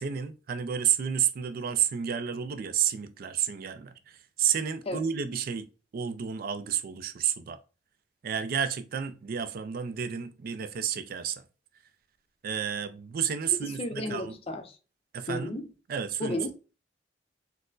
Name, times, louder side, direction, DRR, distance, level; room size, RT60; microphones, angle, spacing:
voice 1, 0.0-5.7 5.9-7.6 8.2-11.4 12.4-14.4 15.1-15.6 15.9-16.5, right 8 dB, 55° right, 0.3 m, -31 dB
voice 2, 13.5-14.8 15.3-15.7 16.2-16.5, left 1 dB, 35° left, 0.5 m, -33 dB
4.2 x 2.0 x 2.5 m
head